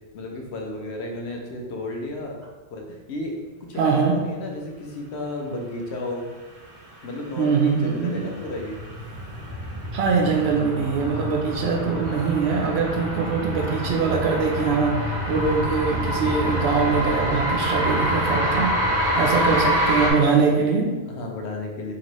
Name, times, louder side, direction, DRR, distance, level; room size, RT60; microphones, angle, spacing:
voice 1, 0.1-2.4 2.7-3.4 3.7-6.3 7.0-8.8 13.2-13.5 17.6-18.1 19.1-19.7 21.1-21.9, left 2 dB, 75° left, 1 dB, 1.0 m, -33 dB
voice 2, 3.8-4.1 7.3-8.2 9.9-18.7 19.1-20.9, right 5 dB, 70° right, 1 dB, 0.9 m, -22 dB
sound 1, 7.3-20.1, equal, 35° right, 0.9 m, -26 dB
4.2 x 3.0 x 3.0 m, 1.2 s
omnidirectional pair, 1.1 m